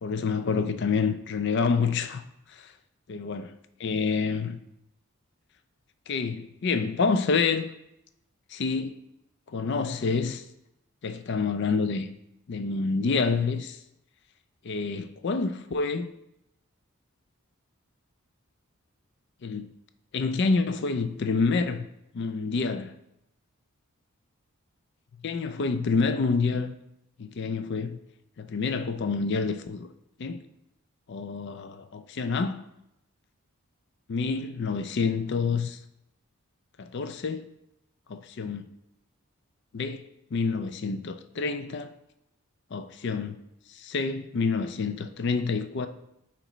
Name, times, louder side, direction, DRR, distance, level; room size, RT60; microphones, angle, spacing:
voice 1, 0.0-2.2 2.5-2.7 3.1-3.5 3.8-4.6 6.1-7.7 8.5-8.9 9.5-10.4 11.0-12.1 12.5-13.8 14.6-16.1 19.4-19.7 20.1-21.9 22.1-22.9 25.2-26.7 27.2-28.0 28.4-29.9 30.2-30.4 31.1-32.6 34.1-35.8 36.8-37.4 38.1-38.7 39.7-40.0 40.3-41.9 42.7-43.4 43.7-45.9, left 4 dB, 50° left, 0.4 m, -28 dB
7.7 x 4.5 x 3.1 m
head